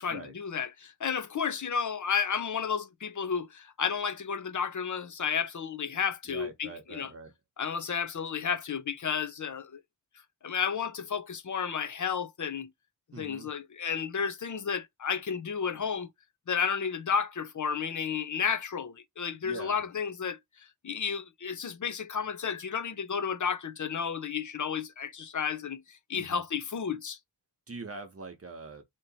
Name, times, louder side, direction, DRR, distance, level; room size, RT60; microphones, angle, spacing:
voice 1, 0.0-7.1 7.6-9.8 10.4-12.7 13.2-16.1 16.5-27.2, left 6 dB, 45° left, 0.7 m, -32 dB
voice 2, 6.3-7.3 13.1-13.5 19.4-19.8 26.1-26.4 27.7-28.8, right 3 dB, 35° right, 1.0 m, -43 dB
3.1 x 2.9 x 4.0 m
wide cardioid pair, 110°, 41 cm